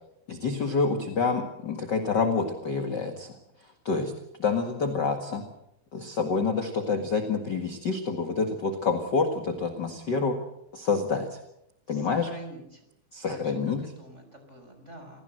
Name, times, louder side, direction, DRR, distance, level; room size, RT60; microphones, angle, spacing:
voice 1, 0.3-3.3 3.8-4.1 4.4-5.4 5.9-10.4 10.7-11.4 11.9-12.3 13.1-13.9, left 4 dB, 40° left, 6 dB, 1.7 m, -27 dB
voice 2, 11.9-12.6 13.3-13.5 14.0-15.2, right 1 dB, 15° right, 5 dB, 5.5 m, -46 dB
28.0 x 17.5 x 7.8 m, 0.81 s
omnidirectional pair, 4.3 m